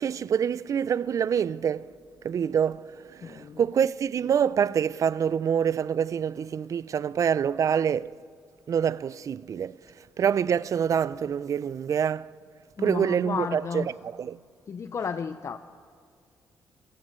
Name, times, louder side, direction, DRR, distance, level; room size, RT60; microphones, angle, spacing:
voice 1, 0.0-1.8 2.2-8.1 8.7-9.8 10.2-12.3 12.8-13.8 14.2-14.4, right 8 dB, 50° right, 0.4 m, -26 dB
voice 2, 3.2-3.6 12.8-13.9 14.7-15.6, left 6 dB, 45° left, 0.6 m, -33 dB
27.0 x 17.0 x 3.2 m
supercardioid pair, 70°, 7 cm